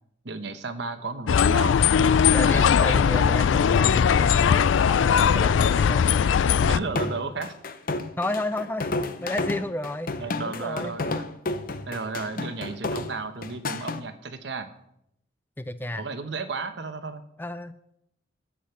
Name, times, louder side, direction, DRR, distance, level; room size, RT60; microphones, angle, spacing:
voice 1, 0.2-1.8 2.5-3.3 6.7-7.5 10.2-11.3 11.9-14.7 15.9-17.2, right 4 dB, 65° right, 9 dB, 1.0 m, -34 dB
sound 1, 1.3-6.8, left 7 dB, 80° left, 0.4 m, -20 dB
voice 2, 2.3-4.5 4.9-6.1 8.2-10.1 10.4-10.9 15.6-16.0 17.4-17.7, left 1 dB, 10° left, 12 dB, 0.4 m, -31 dB
sound 2, 6.6-14.0, left 2 dB, 50° left, 0.7 m, -31 dB
11.5 x 8.5 x 5.7 m, 0.78 s
head